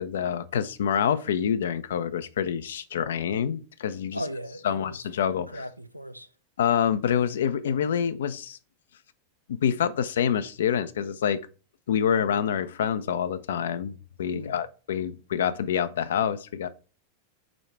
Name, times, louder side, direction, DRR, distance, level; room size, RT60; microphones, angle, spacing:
voice 1, 0.0-4.2 4.6-5.6 6.6-8.6 9.5-11.4 11.9-13.9 14.2-16.7, left 8 dB, 60° left, 0.5 m, -26 dB
voice 2, 4.1-5.1 5.5-6.3 14.3-14.6, equal, 90° right, 0.5 m, -37 dB
5.0 x 4.7 x 4.4 m
figure-of-eight pair, 90°, 0 cm